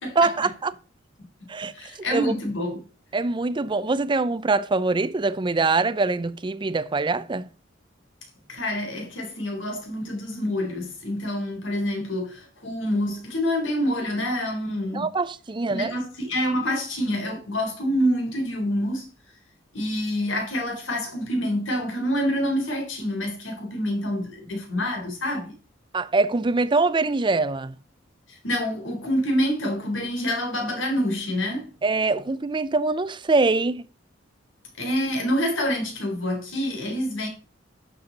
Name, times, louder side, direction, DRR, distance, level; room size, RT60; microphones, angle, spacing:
voice 1, 0.2-0.7 1.5-1.7 2.1-2.3 3.1-7.5 14.9-16.0 25.9-27.8 31.8-33.9, right 3 dB, 25° right, 0.5 m, -23 dB
voice 2, 1.6-2.8 8.5-15.1 15.7-19.1 19.7-25.5 28.4-31.7 34.8-37.3, equal, 85° left, 3.6 m, -27 dB
11.5 x 7.0 x 4.0 m
head